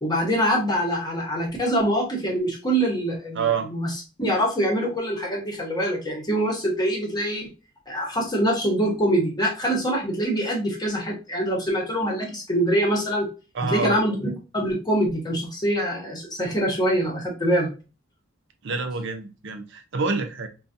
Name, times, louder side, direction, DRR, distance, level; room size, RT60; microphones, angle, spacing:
voice 1, 0.0-3.4 3.7-3.9 4.2-7.5 7.9-13.3 13.6-17.7, right 1 dB, 20° left, 0.9 m, -24 dB
voice 2, 3.3-3.7 13.5-14.0 18.6-20.5, right 4 dB, 60° right, 0.5 m, -27 dB
3.8 x 2.3 x 2.5 m
head